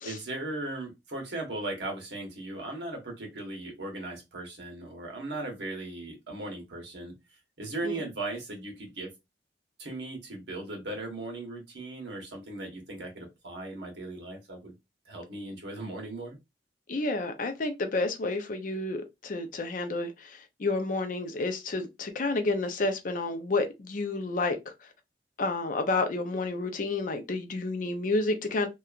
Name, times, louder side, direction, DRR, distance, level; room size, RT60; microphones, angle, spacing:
voice 1, 0.0-7.1 7.6-9.1 9.8-14.7 15.1-16.4, right 2 dB, 85° right, 1.1 m, -37 dB
voice 2, 16.9-24.9 25.4-28.7, left 2 dB, 50° left, 0.5 m, -30 dB
2.8 x 2.3 x 2.4 m
head